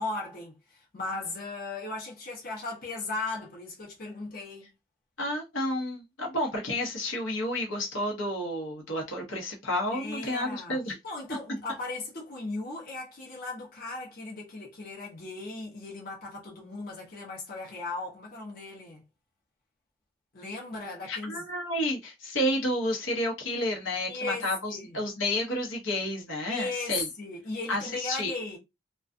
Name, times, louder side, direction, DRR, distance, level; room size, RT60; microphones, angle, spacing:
voice 1, 0.0-4.7 9.9-19.0 20.3-21.5 24.1-25.0 26.5-28.6, left 3 dB, 50° left, 0.8 m, -37 dB
voice 2, 5.2-10.9 21.1-27.1 27.7-28.3, left 1 dB, 85° left, 0.9 m, -30 dB
2.3 x 2.3 x 2.5 m
head